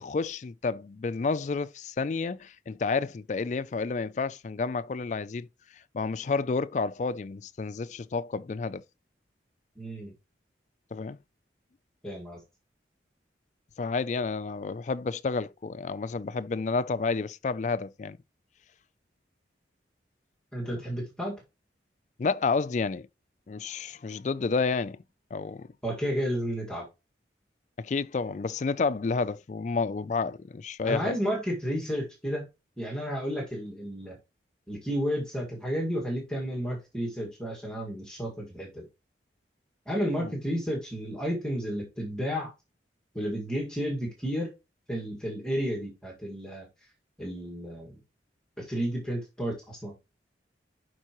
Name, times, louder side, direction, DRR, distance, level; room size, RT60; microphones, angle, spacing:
voice 1, 0.0-5.5 5.9-8.8 10.9-11.2 13.8-18.2 20.7-20.8 22.2-23.1 23.5-25.0 25.3-25.7 27.8-31.1 40.2-40.3, left 4 dB, 40° left, 0.3 m, -30 dB
voice 2, 9.8-10.1 12.0-12.4 20.5-21.3 25.8-26.9 30.8-32.5 32.8-34.2 34.7-38.9 39.9-42.5 43.1-44.5 44.9-46.7 47.2-48.0 48.6-49.9, equal, 5° left, 1.8 m, -32 dB
11.0 x 4.6 x 3.0 m
head